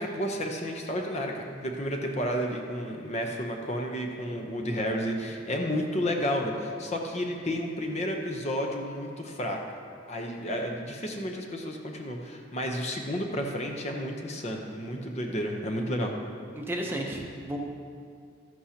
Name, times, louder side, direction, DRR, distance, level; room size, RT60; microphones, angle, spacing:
voice 1, 0.0-9.6 10.1-16.1, equal, 35° left, 2 dB, 0.8 m, -31 dB
voice 2, 16.5-17.6, right 1 dB, 10° right, 0 dB, 0.8 m, -33 dB
13.0 x 11.0 x 2.9 m, 2.3 s
head